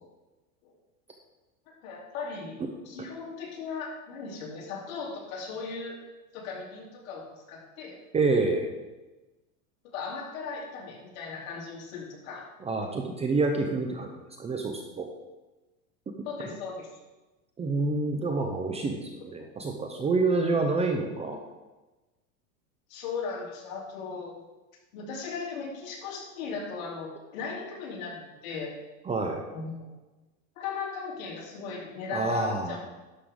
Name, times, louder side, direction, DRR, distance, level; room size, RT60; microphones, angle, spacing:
voice 1, 1.7-2.5 2.8-6.0 6.3-8.0 9.9-12.5 16.2-16.9 19.4-19.5 22.9-24.4 24.9-28.7 29.5-29.9 30.5-32.8, left 5 dB, 65° left, -2 dB, 3.1 m, -37 dB
voice 2, 8.1-8.7 12.6-14.1 14.4-15.1 17.6-21.4 29.1-29.4 32.1-32.8, right 3 dB, 15° right, 3 dB, 0.6 m, -27 dB
11.5 x 6.7 x 3.7 m, 1.1 s
supercardioid pair, 140°, 44 cm